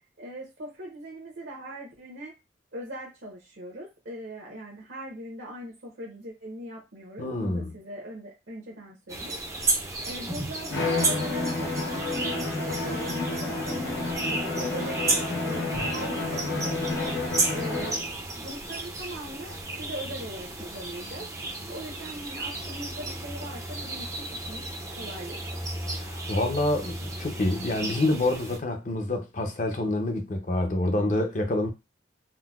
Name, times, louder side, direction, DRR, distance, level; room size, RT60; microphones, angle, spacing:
voice 1, 0.2-2.3 2.7-9.7 10.0-10.7 11.0-12.3 12.6-15.1 15.4-17.2 17.5-18.1 18.4-21.3 21.7-24.7 24.9-25.7, equal, 65° right, 0.8 m, -40 dB
voice 2, 7.2-7.7 25.9-31.7, left 1 dB, 40° left, 0.5 m, -27 dB
sound 1, 9.1-28.6, right 2 dB, 15° right, 0.4 m, -33 dB
Bowed string instrument, 10.7-18.1, left 2 dB, 85° left, 0.8 m, -30 dB
3.8 x 2.1 x 2.3 m
head